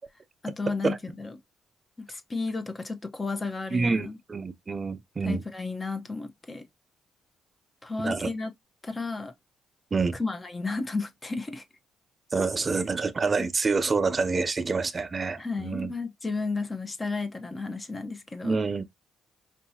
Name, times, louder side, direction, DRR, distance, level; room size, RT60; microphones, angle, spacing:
voice 1, 0.4-1.3 2.0-4.2 5.2-6.6 7.8-8.5 8.8-9.3 10.1-11.6 13.4-13.5 15.4-18.6, left 3 dB, 25° left, 0.8 m, -33 dB
voice 2, 3.7-5.4 8.0-8.3 9.9-10.1 12.3-15.9 18.4-18.8, right 4 dB, 30° right, 0.4 m, -27 dB
4.6 x 2.8 x 2.8 m
cardioid pair, 90°, 0 cm